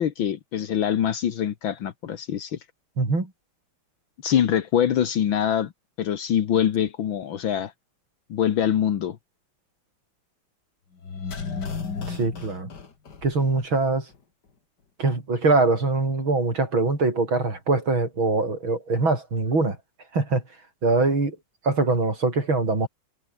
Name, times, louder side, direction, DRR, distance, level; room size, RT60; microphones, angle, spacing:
voice 1, 0.0-2.6 4.2-5.7 6.0-7.7 8.3-9.2, left 9 dB, 75° left, 2.0 m, -24 dB
voice 2, 3.0-3.3 12.1-12.7 13.2-14.0 15.0-19.8 20.1-20.4 20.8-21.4 21.6-22.9, right 3 dB, 75° right, 6.4 m, -23 dB
sound 1, 11.0-13.9 14.1-14.2, left 5 dB, 55° left, 3.1 m, -34 dB
omnidirectional pair, 2.2 m